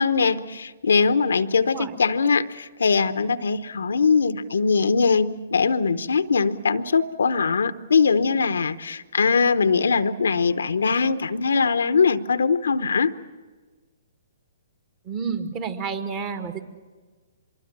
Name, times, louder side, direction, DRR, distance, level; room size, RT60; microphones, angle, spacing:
voice 1, 0.0-13.1, left 5 dB, 75° left, 12 dB, 0.9 m, -21 dB
voice 2, 15.1-16.6, right 5 dB, 30° right, 8 dB, 1.9 m, -30 dB
24.5 x 23.0 x 7.4 m, 1.4 s
hypercardioid pair, 130°, 0 cm